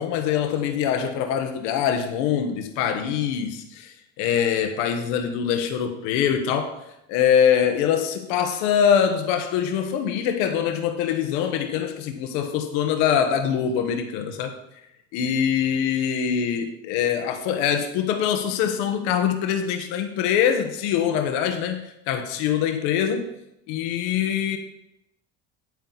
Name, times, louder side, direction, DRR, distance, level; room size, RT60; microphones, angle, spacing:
voice 1, 0.0-6.8 7.1-14.6 15.1-23.3 23.7-24.6, left 8 dB, 90° left, 1.2 m, -23 dB
9.6 x 9.0 x 4.0 m
cardioid pair, 145°, 29 cm